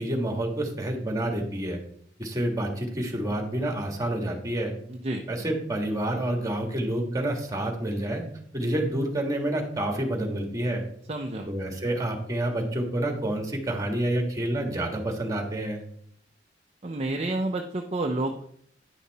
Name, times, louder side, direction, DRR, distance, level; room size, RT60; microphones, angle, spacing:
voice 1, 0.0-1.8 2.2-4.7 5.3-8.2 8.5-10.8 11.5-15.8, right 1 dB, 20° right, 3 dB, 1.6 m, -28 dB
voice 2, 4.9-5.2 11.1-11.5 16.8-18.4, right 2 dB, 35° right, 3 dB, 0.6 m, -29 dB
10.0 x 5.7 x 4.1 m, 0.65 s
head